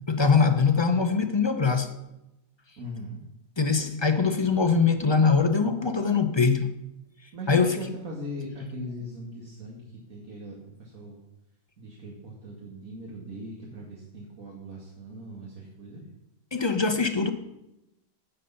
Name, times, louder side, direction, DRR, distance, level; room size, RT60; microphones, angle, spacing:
voice 1, 0.1-1.9 3.6-6.7 7.5-7.8 16.5-17.3, left 5 dB, 30° left, 0.5 m, -22 dB
voice 2, 2.8-3.2 7.3-11.2 11.8-16.0, equal, 65° right, 2.5 m, -40 dB
16.5 x 6.7 x 5.7 m
omnidirectional pair, 1.5 m